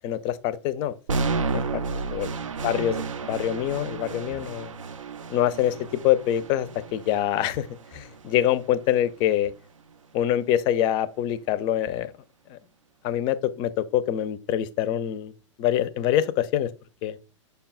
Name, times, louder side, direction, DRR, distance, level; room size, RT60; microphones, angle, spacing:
voice 1, 0.0-1.2 1.5-1.8 2.1-2.3 2.6-4.7 5.3-5.7 6.0-7.7 7.9-9.5 10.1-12.1 12.5-12.6 13.0-15.3 15.6-16.7 17.0-17.2, left 11 dB, 30° left, 0.4 m, -25 dB
sound 1, 1.1-9.1, right 4 dB, 80° right, 0.4 m, -32 dB
5.3 x 2.2 x 3.7 m
figure-of-eight pair, 100°, 16 cm